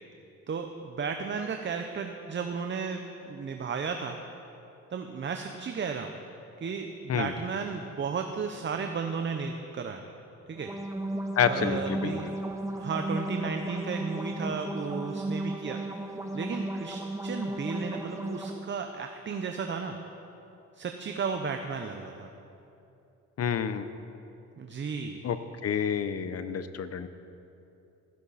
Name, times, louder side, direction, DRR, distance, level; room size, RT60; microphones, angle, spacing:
voice 1, 0.5-4.2 4.9-6.1 6.6-10.0 10.5-10.7 11.4-12.4 12.8-15.8 16.3-19.9 20.7-22.3 24.6-25.2, right 5 dB, 40° right, 5 dB, 0.9 m, -34 dB
sound 1, 10.5-18.5, right 1 dB, 10° right, 1.5 m, -34 dB
voice 2, 11.4-12.1 23.4-23.9 25.2-25.4 25.6-27.1, left 7 dB, 55° left, 11 dB, 0.9 m, -28 dB
15.5 x 14.0 x 4.2 m, 2.8 s
cardioid pair, 90°, 30 cm